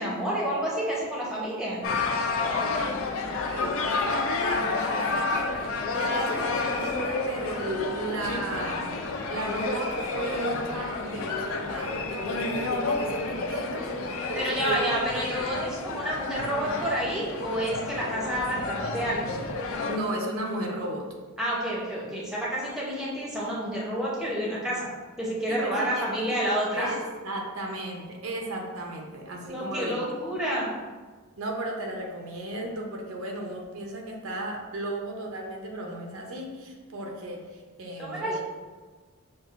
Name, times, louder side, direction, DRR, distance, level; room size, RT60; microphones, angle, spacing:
voice 1, 0.0-1.8 14.4-19.3 21.4-24.9 25.2-26.9 29.4-30.7 38.0-38.4, equal, ahead, -6 dB, 0.8 m, -29 dB
sound 1, 1.8-20.0, left 3 dB, 65° left, 0.4 m, -30 dB
voice 2, 3.5-9.0 9.3-13.9 14.3-15.0 19.9-21.1 25.5-26.4 26.7-27.0 27.2-30.0 31.4-38.4, right 1 dB, 70° right, 0 dB, 0.6 m, -34 dB
6.4 x 2.4 x 2.5 m, 1.4 s
head